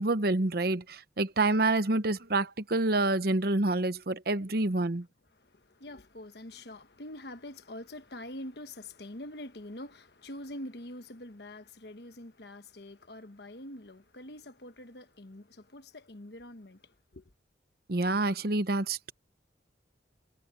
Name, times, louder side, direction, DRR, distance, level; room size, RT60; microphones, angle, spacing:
voice 1, 0.0-5.1 17.9-19.1, right 2 dB, 55° right, 0.9 m, -27 dB
voice 2, 5.3-17.2, left 1 dB, 60° left, 1.3 m, -45 dB
head